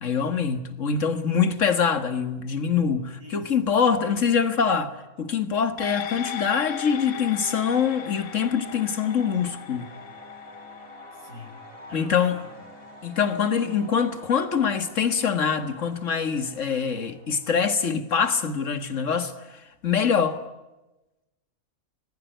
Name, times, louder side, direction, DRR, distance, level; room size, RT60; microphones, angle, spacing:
voice 1, 0.0-9.9 11.9-12.4 13.0-19.3 19.8-20.4, left 6 dB, 60° left, 2.1 m, -24 dB
voice 2, 3.2-3.7 11.1-12.5, left 1 dB, 85° right, 5.7 m, -46 dB
sound 1, 5.8-14.5 14.9-15.0, left 8 dB, 75° left, 1.6 m, -39 dB
sound 2, 6.6-17.6, right 1 dB, 40° right, 3.5 m, -49 dB
26.0 x 20.5 x 9.2 m
omnidirectional pair, 1.5 m